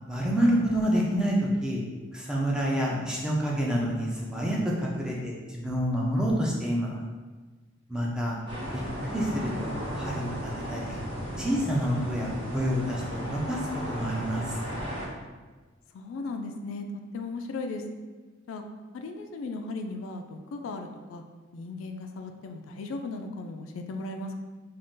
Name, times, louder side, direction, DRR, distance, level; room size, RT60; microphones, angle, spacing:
voice 1, 0.1-1.8 2.1-7.0 7.9-8.4 8.7-11.0 11.4-14.6, equal, 5° right, -4 dB, 0.4 m, -28 dB
voice 2, 8.1-8.5 15.9-16.9 17.1-17.8 18.5-18.6 18.9-21.2 21.5-24.4, left 3 dB, 80° left, 5 dB, 0.3 m, -37 dB
sound 1, 8.5-15.1, equal, 25° right, 1.0 m, -35 dB
2.5 x 2.3 x 3.6 m, 1.3 s
head